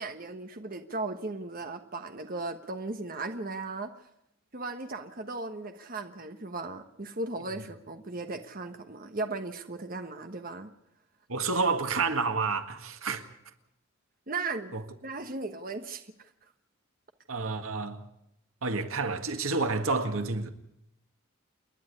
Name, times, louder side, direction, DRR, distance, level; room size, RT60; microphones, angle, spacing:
voice 1, 0.0-3.9 4.5-10.7 14.3-16.1, right 3 dB, 45° right, 1.2 m, -37 dB
voice 2, 11.3-13.3 14.7-14.8 17.3-18.0 18.6-20.5, right 4 dB, 90° right, 1.8 m, -29 dB
29.0 x 10.5 x 9.7 m
head